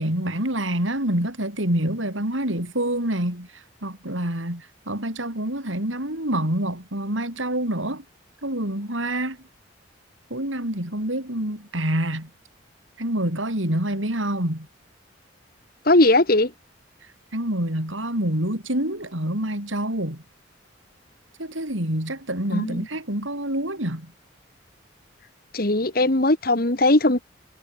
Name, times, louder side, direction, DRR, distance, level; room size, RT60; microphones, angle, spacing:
voice 1, 0.0-8.0 8.4-9.4 10.3-12.3 13.0-14.7 17.3-20.2 21.4-24.1, right 1 dB, 80° right, 8.0 m, -27 dB
voice 2, 15.9-16.5 22.5-22.8 25.5-27.2, left 2 dB, 50° left, 1.8 m, -19 dB
head